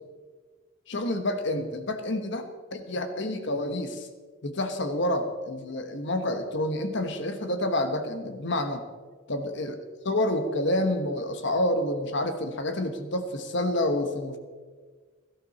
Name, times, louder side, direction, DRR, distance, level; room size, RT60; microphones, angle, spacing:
voice 1, 0.9-4.1 4.4-8.8 9.3-9.7 10.0-14.4, left 1 dB, 60° left, 8 dB, 1.2 m, -28 dB
18.0 x 12.5 x 4.2 m, 1.5 s
head